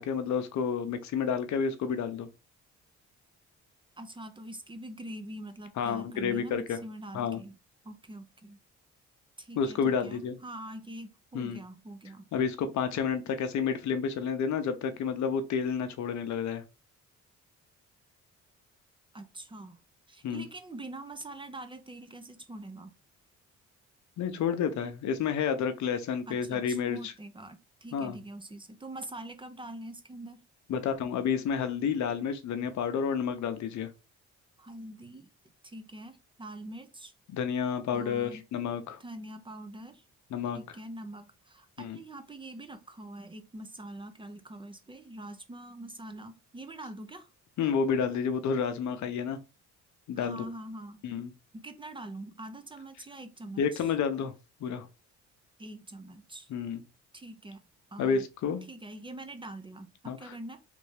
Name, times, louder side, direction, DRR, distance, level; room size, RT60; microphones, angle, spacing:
voice 1, 0.0-2.3 5.8-6.8 7.1-7.4 9.6-10.3 11.3-11.6 12.3-16.6 20.2-20.5 24.2-27.1 27.9-28.2 30.7-33.9 37.3-39.0 40.3-40.6 41.8-42.0 47.6-49.4 50.1-50.4 51.0-51.3 53.6-54.3 54.6-54.9 56.5-56.8 58.0-58.6 60.1-60.3, left 6 dB, 70° left, 0.7 m, -30 dB
voice 2, 4.0-7.5 7.8-8.6 9.4-12.3 19.1-19.8 20.1-22.9 26.3-30.4 34.6-35.3 35.6-37.1 37.9-38.4 39.0-40.0 40.5-47.3 50.2-51.0 51.5-53.9 55.6-56.5 57.1-57.6 57.9-58.2 58.7-60.6, right 1 dB, 15° right, 0.5 m, -44 dB
3.3 x 2.6 x 3.3 m
cardioid pair, 90°, 30 cm